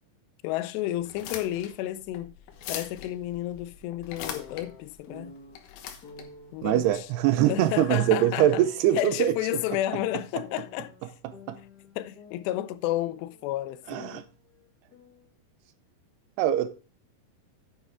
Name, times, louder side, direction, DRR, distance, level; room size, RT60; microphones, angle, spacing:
voice 1, 0.4-2.3 2.7-5.3 6.5-7.1 7.5-8.6 8.9-10.9 12.0-14.2, left 14 dB, 85° left, 2.7 m, -31 dB
sound 1, 1.0-7.5, left 9 dB, 70° left, 2.8 m, -42 dB
sound 2, 4.2-5.5 6.0-6.5 7.4-9.0 9.5-11.0 11.3-13.5 13.7-15.3, left 4 dB, 45° left, 1.2 m, -50 dB
voice 2, 6.6-9.3 11.5-11.6 13.9-14.2 16.4-16.7, right 12 dB, 80° right, 2.7 m, -23 dB
9.4 x 9.3 x 3.6 m
omnidirectional pair, 4.9 m